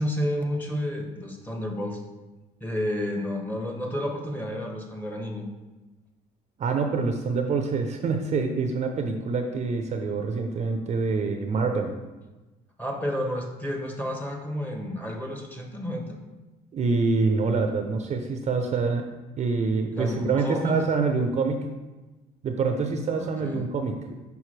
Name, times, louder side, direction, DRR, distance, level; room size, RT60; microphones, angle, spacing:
voice 1, 0.0-2.0 2.6-5.5 12.8-16.2 19.9-20.8 23.2-23.6, equal, 10° left, 1 dB, 1.1 m, -30 dB
voice 2, 6.6-12.0 16.7-19.1 19.4-21.7 22.4-24.0, right 4 dB, 40° right, 5 dB, 0.6 m, -26 dB
5.8 x 5.4 x 3.2 m, 1.1 s
cardioid pair, 110°, 17 cm